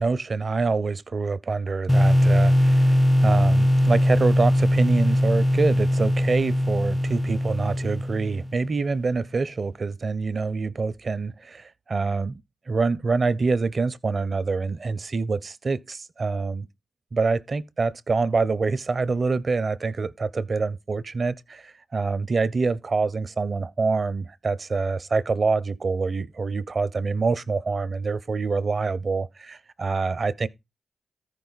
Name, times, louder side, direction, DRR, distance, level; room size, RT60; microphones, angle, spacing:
voice 1, 0.0-12.4 12.7-16.7 17.1-30.5, right 4 dB, 55° right, 0.6 m, -26 dB
sound 1, 1.9-8.7, equal, 5° left, 0.4 m, -20 dB
13.5 x 5.3 x 3.9 m
supercardioid pair, 45°, 0 cm